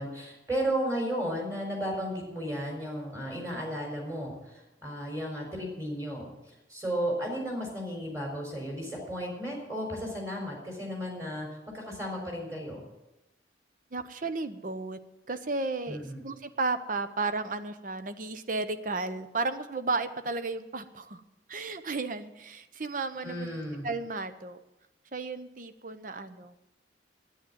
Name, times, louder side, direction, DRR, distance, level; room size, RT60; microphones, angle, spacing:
voice 1, 0.0-6.3 6.7-11.5 11.7-12.8 15.9-16.2 23.2-23.9, equal, 15° right, 0 dB, 4.1 m, -34 dB
voice 2, 13.9-15.0 15.3-21.2 21.5-23.5 23.8-24.6 25.1-26.5, right 3 dB, 45° right, 10 dB, 0.8 m, -33 dB
10.0 x 9.6 x 8.7 m, 0.95 s
head